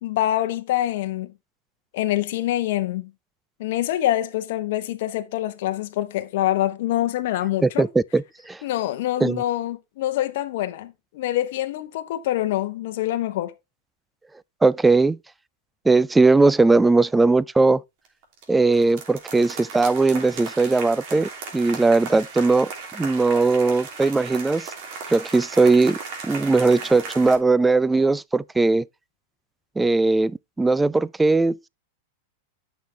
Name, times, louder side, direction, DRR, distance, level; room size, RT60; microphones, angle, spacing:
voice 1, 0.0-1.3 1.9-3.1 3.6-7.9 8.6-13.5, left 13 dB, 65° left, 0.8 m, -25 dB
voice 2, 7.6-8.6 9.2-9.4 14.6-15.2 15.9-17.8 18.5-24.7 25.1-26.0 26.2-28.9 29.8-31.7, right 3 dB, 10° right, 0.3 m, -19 dB
sound 1, 18.0-18.4 18.7-27.4, right 5 dB, 55° right, 2.9 m, -36 dB
9.2 x 6.1 x 3.4 m
hypercardioid pair, 105°, 0 cm